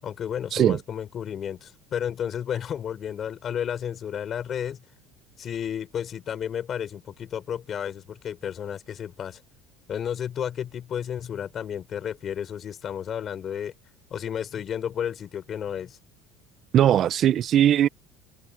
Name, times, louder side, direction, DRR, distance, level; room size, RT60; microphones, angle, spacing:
voice 1, 0.0-4.8 5.4-9.4 9.9-13.7 14.1-16.0, left 9 dB, 25° left, 5.9 m, -32 dB
voice 2, 16.7-17.9, right 11 dB, 30° right, 0.3 m, -19 dB
cardioid pair, 175°, 0 cm